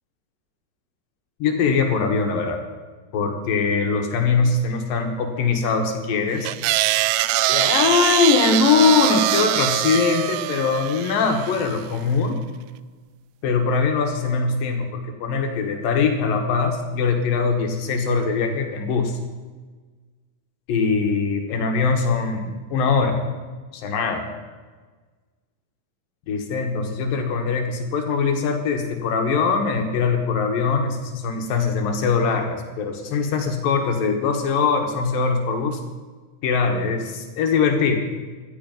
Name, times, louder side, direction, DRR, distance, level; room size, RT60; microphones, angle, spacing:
voice 1, 1.4-2.6 3.1-6.5 7.5-12.4 13.4-19.2 20.7-23.2 23.7-24.3 26.3-35.8 36.4-38.0, left 5 dB, 75° left, 4 dB, 3.1 m, -22 dB
sound 1, 6.5-11.8, right 16 dB, 80° right, 2.1 m, -23 dB
17.0 x 12.5 x 5.3 m, 1.4 s
omnidirectional pair, 4.1 m